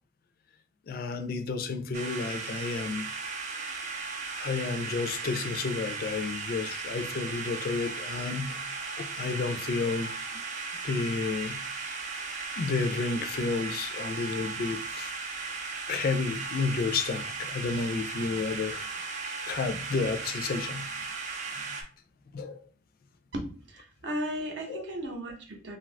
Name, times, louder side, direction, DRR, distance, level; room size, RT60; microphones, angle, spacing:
voice 1, 0.9-3.1 4.4-8.7 9.0-10.1 10.8-11.6 12.6-15.1 15.9-18.9 19.5-20.9 22.3-22.6 24.7-24.8, left 4 dB, 50° left, 0.3 m, -31 dB
sound 1, 1.9-21.8, right 4 dB, 40° right, 0.5 m, -36 dB
voice 2, 23.3-25.8, equal, 70° right, 0.7 m, -35 dB
2.6 x 2.4 x 3.2 m
head